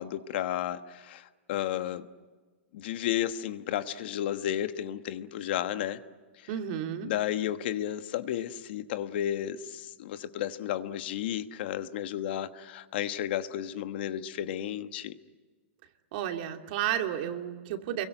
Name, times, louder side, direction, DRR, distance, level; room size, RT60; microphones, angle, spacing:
voice 1, 0.0-2.1 2.7-6.0 7.0-15.1, left 11 dB, 55° left, 10 dB, 1.3 m, -33 dB
voice 2, 6.5-7.1 16.1-18.1, right 10 dB, 50° right, 5 dB, 2.6 m, -32 dB
29.5 x 23.0 x 7.9 m, 1.4 s
hypercardioid pair, 155°, 7 cm